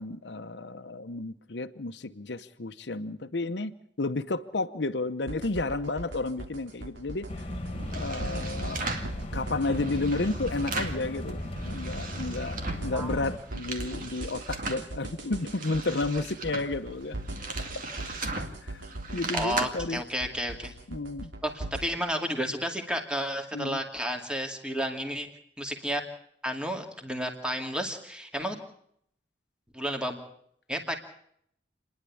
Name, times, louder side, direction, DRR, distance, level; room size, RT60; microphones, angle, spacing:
voice 1, 0.0-7.5 7.9-8.9 9.3-17.2 17.7-17.9 18.7-18.8 19.1-20.0 20.9-21.3 23.5-23.8, left 2 dB, 70° left, 8 dB, 0.9 m, -32 dB
sound 1, 5.3-21.8, right 2 dB, 85° right, 3.1 m, -40 dB
sound 2, 7.3-13.4, left 1 dB, 35° left, 1.9 m, -36 dB
sound 3, 7.7-9.1 9.6-11.1 11.4-12.9 13.3-14.9 15.3-19.6, right 3 dB, 50° right, 2.3 m, -37 dB
voice 2, 19.3-20.7 21.4-25.3 25.6-26.0 26.4-28.6 29.7-30.2 30.7-30.9, equal, 5° right, 4 dB, 2.3 m, -31 dB
29.0 x 11.0 x 8.5 m, 0.70 s
head